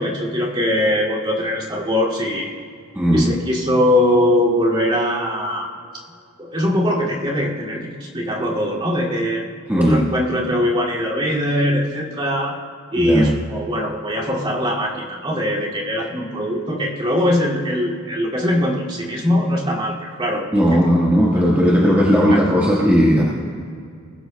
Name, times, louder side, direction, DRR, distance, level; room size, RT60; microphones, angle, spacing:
voice 1, 0.0-2.6 3.1-5.7 6.4-9.4 9.8-12.6 12.9-20.5 22.3-22.4, left 1 dB, 25° right, -5 dB, 2.4 m, -21 dB
voice 2, 2.9-3.3 9.7-10.0 13.0-13.3 20.5-23.2, equal, 10° right, -6 dB, 1.5 m, -16 dB
21.0 x 16.0 x 2.3 m, 2.2 s
head